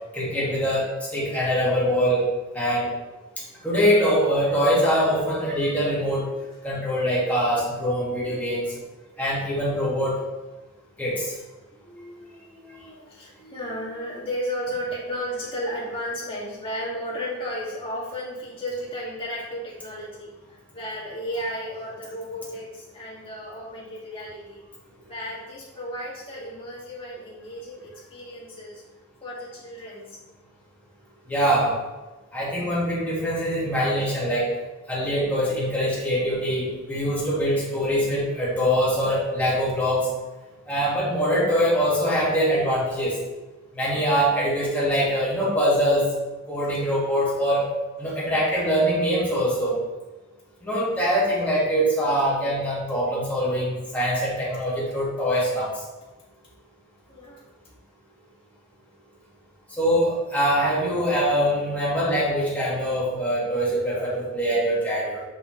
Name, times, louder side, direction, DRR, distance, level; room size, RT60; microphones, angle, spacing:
voice 1, 0.1-2.2 2.5-2.9 3.6-6.3 6.6-8.6 9.2-10.2 11.0-11.3 31.3-31.7 32.3-34.5 34.9-40.1 40.7-43.1 43.7-46.1 46.5-47.7 48.0-49.7 50.6-55.7 59.8-65.2, equal, 10° left, -8 dB, 2.0 m, -23 dB
voice 2, 7.0-7.5 7.9-8.6 11.7-24.6 25.1-28.8 29.2-30.2 57.1-57.4, equal, 25° left, -7 dB, 2.1 m, -34 dB
6.9 x 5.2 x 3.2 m, 1.1 s
head